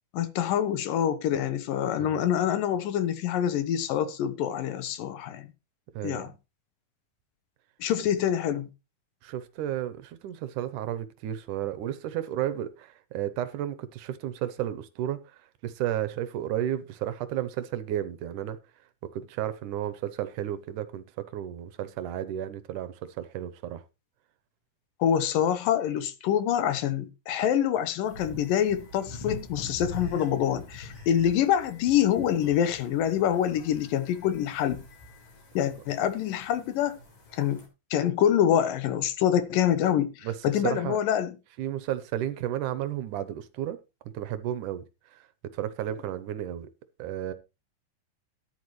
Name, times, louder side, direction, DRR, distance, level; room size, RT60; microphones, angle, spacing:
voice 1, 0.1-5.5 6.0-6.3 7.8-8.7 25.0-34.9 35.5-37.0 37.3-37.6 37.9-41.4, left 10 dB, 85° left, 2.8 m, -26 dB
voice 2, 5.9-6.3 9.2-18.6 19.0-23.8 40.2-41.0 41.6-43.8 44.1-44.8 45.1-46.7 47.0-47.3, right 11 dB, 75° right, 2.3 m, -33 dB
sound 1, 28.0-37.7, left 1 dB, 60° left, 5.5 m, -44 dB
13.5 x 10.5 x 3.2 m
omnidirectional pair, 3.8 m